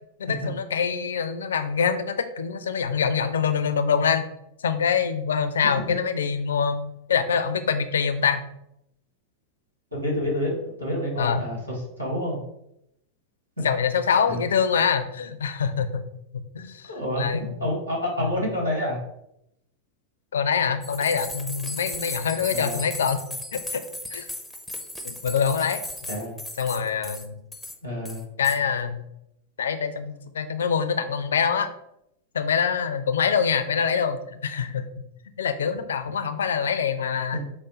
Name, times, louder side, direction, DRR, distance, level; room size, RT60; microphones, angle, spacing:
voice 1, 0.2-4.3 4.6-8.4 11.2-11.4 13.6-16.0 16.3-16.9 17.2-17.5 18.2-18.4 20.3-23.2 23.5-23.8 24.1-24.3 25.0-25.8 26.6-27.4 28.4-29.0 29.6-31.7 32.3-34.9 35.4-37.5, left 6 dB, 65° left, 9 dB, 0.4 m, -25 dB
voice 2, 9.9-12.4 13.6-13.7 14.3-14.4 16.9-19.0 22.5-22.8 26.1-26.4 27.8-28.3 37.3-37.4, left 1 dB, 80° right, -3 dB, 1.6 m, -28 dB
sound 1, 20.8-27.3 27.5-27.7 28.0-28.6, left 1 dB, ahead, 0.6 m, -36 dB
4.9 x 2.1 x 4.1 m, 0.79 s
figure-of-eight pair, 90°, 0 cm